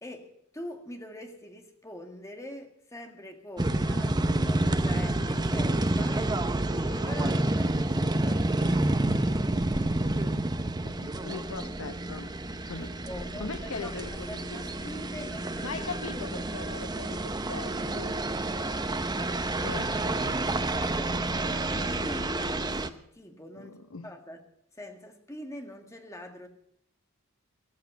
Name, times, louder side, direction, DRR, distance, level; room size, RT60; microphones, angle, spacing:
voice 1, 0.0-6.3 6.7-8.9 12.8-13.9 14.2-15.9 16.1-16.3 18.5-18.8 19.7-19.8 20.9-23.8 24.0-24.4 24.7-26.5, left 1 dB, 15° left, 1.9 m, -44 dB
sound 1, 3.6-22.9, right 2 dB, 20° right, 0.7 m, -29 dB
voice 2, 10.8-12.3 12.7-12.9 13.4-15.3 15.6-18.2 19.6-20.4 23.5-24.1, left 4 dB, 90° left, 0.9 m, -40 dB
16.0 x 14.0 x 5.4 m
head